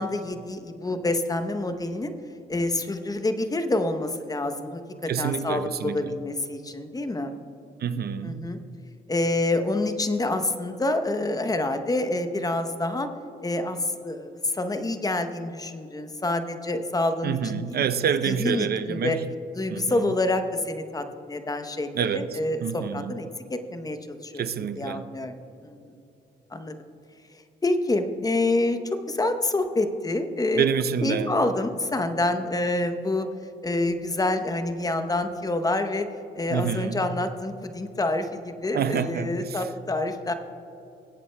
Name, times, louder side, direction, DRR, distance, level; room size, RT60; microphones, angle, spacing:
voice 1, 0.0-2.1 2.5-7.3 8.2-8.6 9.1-13.1 13.4-17.4 17.7-17.8 18.3-19.2 19.6-24.4 24.8-26.0 26.5-26.8 27.6-28.8 29.1-30.6 31.0-33.3 33.6-36.1 36.4-40.3, left 2 dB, 20° left, 8 dB, 0.8 m, -27 dB
voice 2, 5.1-6.2 7.8-8.5 17.2-19.2 19.7-20.1 21.9-23.1 24.3-25.1 30.5-31.3 36.5-37.1 38.7-39.7, right 7 dB, 50° right, 11 dB, 0.6 m, -28 dB
22.0 x 8.5 x 2.2 m, 2.8 s
cardioid pair, 90°, 20 cm